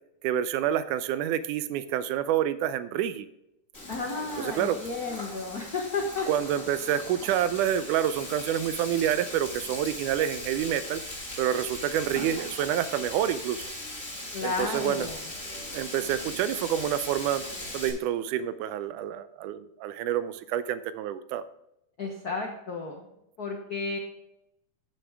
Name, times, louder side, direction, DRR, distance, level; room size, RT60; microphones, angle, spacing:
voice 1, 0.2-3.3 4.4-4.8 6.3-11.0 11.4-13.7 14.4-15.1 15.7-17.5 17.7-21.4, right 10 dB, 80° right, 13 dB, 2.1 m, -28 dB
Frying (food), 3.7-17.9, left 1 dB, 25° left, 3.4 m, -39 dB
voice 2, 3.9-6.3 14.3-15.2 22.0-23.1 23.4-24.0, left 4 dB, 85° left, 1 dB, 0.8 m, -32 dB
13.0 x 6.4 x 3.5 m, 0.83 s
omnidirectional pair, 3.6 m